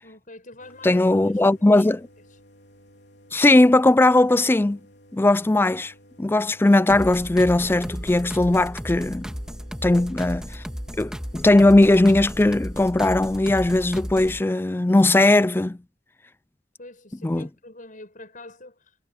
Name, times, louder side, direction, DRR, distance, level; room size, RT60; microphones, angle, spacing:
voice 1, 0.0-1.4 1.8-1.9 9.9-10.1 16.8-19.0, left 2 dB, 45° left, 7.2 m, -44 dB
sound 1, 0.6-14.5, equal, 65° left, 3.9 m, -54 dB
voice 2, 0.8-2.0 3.3-4.8 5.1-5.9 6.2-9.3 9.8-10.6 11.0-15.8 17.2-17.5, left 2 dB, 10° left, 0.4 m, -18 dB
sound 2, 6.9-14.4, equal, 5° right, 1.7 m, -34 dB
head